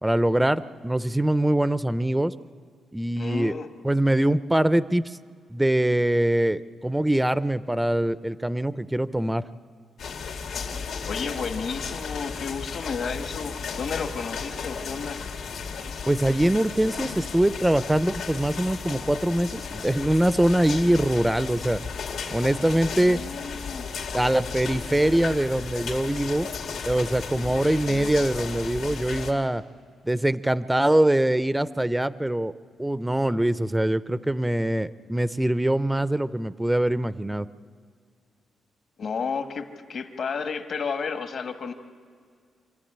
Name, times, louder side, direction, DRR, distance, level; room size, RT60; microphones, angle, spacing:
voice 1, 0.0-2.3 2.9-3.5 3.8-5.2 5.5-9.4 16.1-21.8 22.3-23.2 24.1-26.5 26.9-29.6 30.0-32.5 32.8-37.5, right 1 dB, 10° right, 15 dB, 0.5 m, -23 dB
voice 2, 3.1-3.7 11.1-15.2 20.8-21.0 23.0-23.9 27.8-28.1 39.0-41.7, left 5 dB, 55° left, 6 dB, 1.5 m, -32 dB
sound 1, 10.0-29.3, left 5 dB, 80° left, 2.3 m, -34 dB
26.5 x 12.0 x 8.8 m, 2.1 s
cardioid pair, 115°, 0 cm